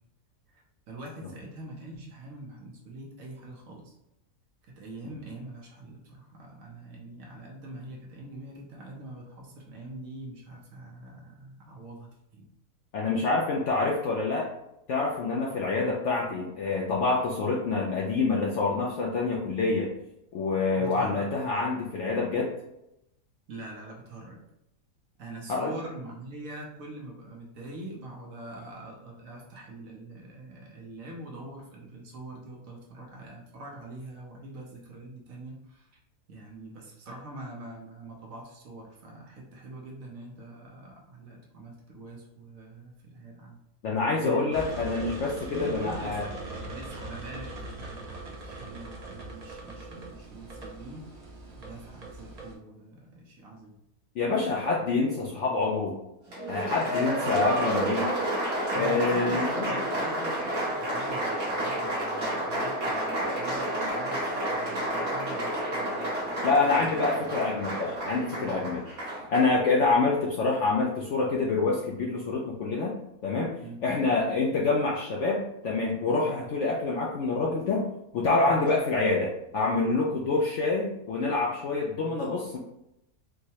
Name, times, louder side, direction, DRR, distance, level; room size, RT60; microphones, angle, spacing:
voice 1, 0.5-3.9 4.8-12.5 20.7-21.3 23.5-24.4 25.2-35.9 36.3-43.6 44.2-44.6 45.5-46.4 46.6-51.1 51.6-53.8 58.7-67.4 68.3-68.6 73.6-73.8 76.0-76.2 78.4-78.7 82.0-82.2, right 1 dB, 65° right, -2 dB, 1.1 m, -44 dB
voice 2, 12.9-14.5 14.9-19.9 20.3-22.5 25.5-25.7 43.8-46.3 54.2-56.0 56.5-58.1 58.7-59.7 66.4-68.8 69.3-72.9 73.2-73.5 73.8-82.6, left 3 dB, 65° left, -2 dB, 0.7 m, -26 dB
sound 1, 44.5-52.5, right 2 dB, 90° right, 0.3 m, -41 dB
Applause, 56.3-69.6, right 1 dB, 45° right, 1.3 m, -30 dB
4.6 x 2.1 x 2.8 m, 0.84 s
omnidirectional pair, 1.7 m